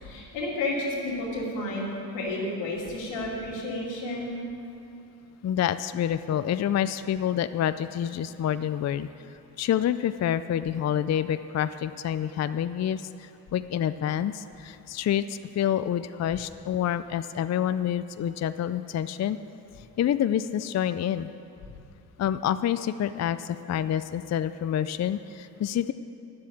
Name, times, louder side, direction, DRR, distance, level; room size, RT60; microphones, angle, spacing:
voice 1, 0.0-4.3, left 2 dB, 90° left, -4 dB, 2.6 m, -31 dB
voice 2, 5.4-9.1 9.6-19.4 20.0-21.3 22.2-25.9, left 10 dB, 40° left, 12 dB, 0.4 m, -27 dB
10.5 x 7.6 x 8.4 m, 2.7 s
supercardioid pair, 55°, 43 cm